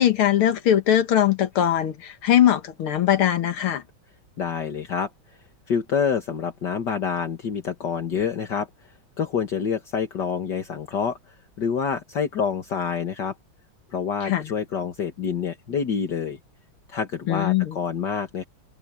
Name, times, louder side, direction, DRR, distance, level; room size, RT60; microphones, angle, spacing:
voice 1, 0.0-3.8 14.2-14.5 17.3-17.8, left 11 dB, 90° left, 2.3 m, -21 dB
voice 2, 4.4-5.1 5.7-8.9 9.2-13.3 13.9-16.4 16.9-18.4, left 6 dB, 55° left, 2.2 m, -27 dB
open air
omnidirectional pair, 2.3 m